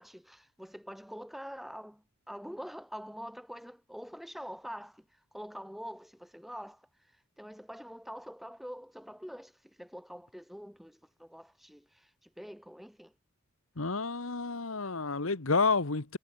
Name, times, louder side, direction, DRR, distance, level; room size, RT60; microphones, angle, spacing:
voice 1, 0.0-6.9 7.4-13.1, equal, ahead, 5.2 m, -45 dB
voice 2, 13.8-16.2, left 4 dB, 80° left, 1.5 m, -30 dB
head